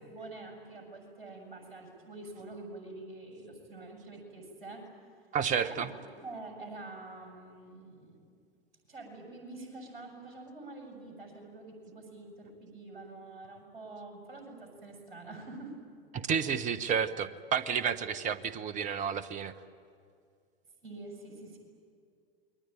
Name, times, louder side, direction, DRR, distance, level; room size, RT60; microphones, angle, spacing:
voice 1, 0.1-4.9 5.6-8.2 8.9-15.7 20.8-21.6, right 2 dB, 65° right, 3 dB, 7.2 m, -46 dB
voice 2, 5.3-5.9 16.1-19.5, right 7 dB, 25° right, 14 dB, 1.1 m, -31 dB
28.0 x 22.5 x 9.1 m, 2.3 s
figure-of-eight pair, 90°, 30 cm